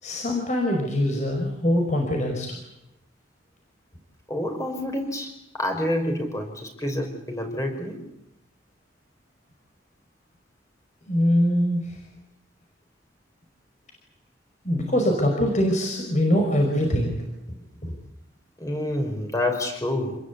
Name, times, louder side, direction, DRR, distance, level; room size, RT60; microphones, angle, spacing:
voice 1, 0.0-2.5 11.1-11.9 14.6-17.3 17.8-17.9, equal, 40° left, 2 dB, 5.3 m, -23 dB
voice 2, 4.3-8.0 18.6-20.2, left 1 dB, 15° left, 4 dB, 5.6 m, -28 dB
28.0 x 21.0 x 8.6 m, 0.84 s
head